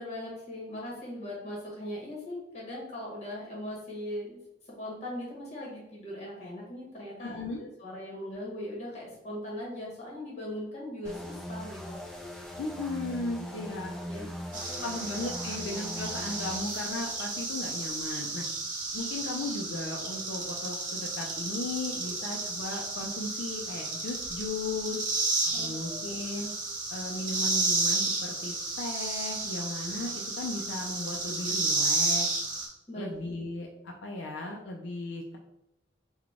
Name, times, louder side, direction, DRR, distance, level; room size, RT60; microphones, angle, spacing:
voice 1, 0.0-4.4 4.8-7.4 7.8-12.6 13.5-13.7 14.1-14.3 14.7-14.8 15.4-15.5 22.2-22.3 25.5-26.2 32.9-33.2, left 1 dB, 35° left, -3 dB, 1.2 m, -40 dB
voice 2, 7.2-7.7 12.6-13.9 14.2-14.3 14.8-18.4 18.9-25.0 25.6-26.5 26.9-32.3 33.0-35.4, left 2 dB, 75° left, 1 dB, 0.4 m, -36 dB
sound 1, 11.0-16.6, equal, 5° left, 0.5 m, -40 dB
sound 2, 14.5-32.7, right 2 dB, 45° right, 0.8 m, -32 dB
3.8 x 2.2 x 3.5 m, 0.87 s
head